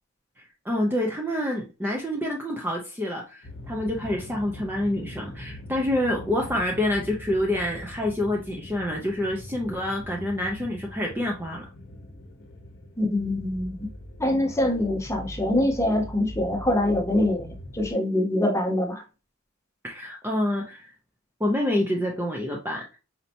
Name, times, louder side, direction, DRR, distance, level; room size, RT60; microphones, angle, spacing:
voice 1, 0.6-11.7 19.8-20.9 21.4-23.0, left 1 dB, 10° right, 0.5 m, -27 dB
sound 1, 3.4-17.9, left 1 dB, 55° left, 0.8 m, -42 dB
voice 2, 13.0-13.9 14.2-19.0, left 1 dB, 15° left, 0.8 m, -24 dB
4.3 x 2.8 x 2.6 m
head